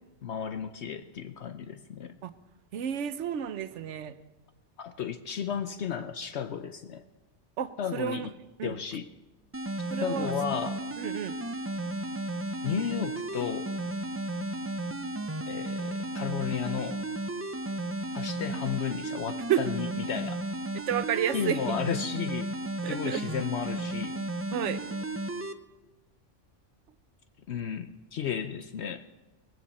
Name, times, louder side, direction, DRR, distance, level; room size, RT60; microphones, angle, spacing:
voice 1, 0.2-2.1 4.8-7.0 7.8-8.3 8.6-9.1 10.0-10.8 12.6-13.7 15.5-17.0 18.1-20.4 21.3-22.5 22.9-24.2 27.5-29.0, left 8 dB, 65° left, 9 dB, 0.9 m, -33 dB
voice 2, 2.7-4.1 7.6-8.3 8.6-8.7 9.9-10.3 11.0-11.4 18.4-18.6 19.5-19.6 20.9-21.6 22.8-23.2 24.5-24.8, right 9 dB, 75° right, 12 dB, 1.1 m, -31 dB
sound 1, 9.5-25.5, right 1 dB, 15° right, 0.5 m, -34 dB
19.0 x 16.0 x 4.2 m, 1.1 s
omnidirectional pair, 1.3 m